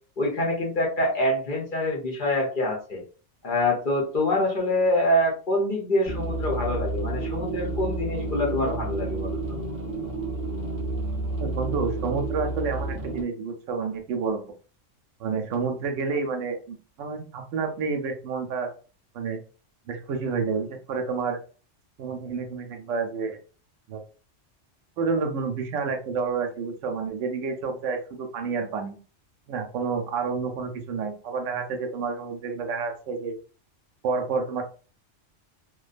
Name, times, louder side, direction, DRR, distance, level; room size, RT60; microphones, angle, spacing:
voice 1, 0.2-3.0 3.4-9.4, left 1 dB, 50° left, -2 dB, 0.7 m, -25 dB
sound 1, 6.1-13.2, right 2 dB, 20° right, 0.4 m, -30 dB
voice 2, 11.4-14.4 15.2-18.7 19.1-19.4 19.9-21.4 22.0-23.4 23.9-24.0 25.0-29.0 29.5-33.4 34.0-34.6, right 5 dB, 80° right, 5 dB, 0.9 m, -29 dB
2.5 x 2.2 x 2.4 m, 0.38 s
omnidirectional pair, 1.3 m